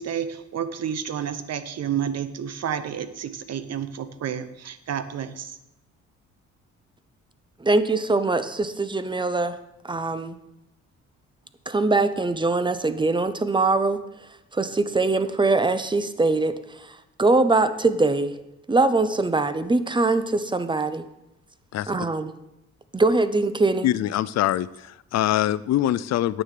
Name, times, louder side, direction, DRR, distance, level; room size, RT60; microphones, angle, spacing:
voice 1, 0.0-5.6, right 8 dB, 55° right, 12 dB, 0.9 m, -30 dB
voice 2, 7.6-9.6 9.8-10.4 11.7-14.0 14.5-16.6 17.2-18.3 18.7-21.0 21.9-22.3 22.9-23.9, right 3 dB, 15° right, 12 dB, 0.7 m, -22 dB
voice 3, 23.8-26.4, left 13 dB, 60° left, 17 dB, 0.5 m, -24 dB
9.3 x 6.6 x 6.6 m, 0.91 s
cardioid pair, 90°, 30 cm